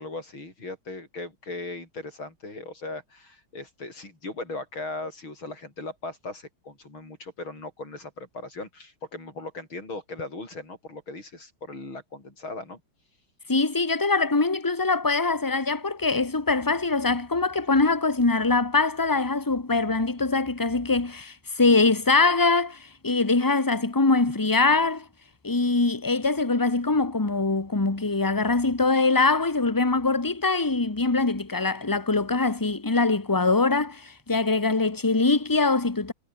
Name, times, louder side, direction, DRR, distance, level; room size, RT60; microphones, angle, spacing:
voice 1, 0.0-12.8, left 2 dB, 70° left, 8.2 m, -38 dB
voice 2, 13.5-25.0 25.4-36.1, left 3 dB, 10° left, 1.2 m, -23 dB
omnidirectional pair, 2.3 m